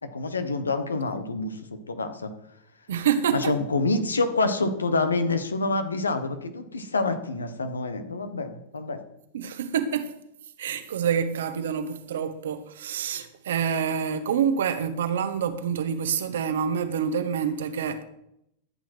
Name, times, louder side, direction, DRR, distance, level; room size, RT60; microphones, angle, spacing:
voice 1, 0.0-2.3 3.3-9.0, left 3 dB, 90° left, 1.4 m, -27 dB
voice 2, 2.9-3.6 9.3-10.1 10.6-18.0, right 7 dB, 70° right, 1.3 m, -27 dB
14.0 x 8.4 x 4.5 m
hypercardioid pair, 95°, 0 cm